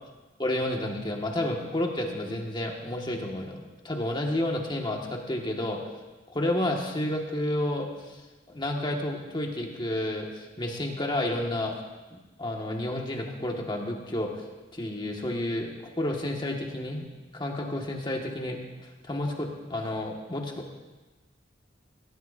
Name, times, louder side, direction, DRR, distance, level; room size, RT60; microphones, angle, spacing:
voice 1, 0.4-5.8 6.3-8.2 8.5-11.8 12.1-14.3 14.7-17.1 17.3-20.7, left 1 dB, 25° left, 0 dB, 1.9 m, -31 dB
21.0 x 17.0 x 2.8 m, 1.2 s
head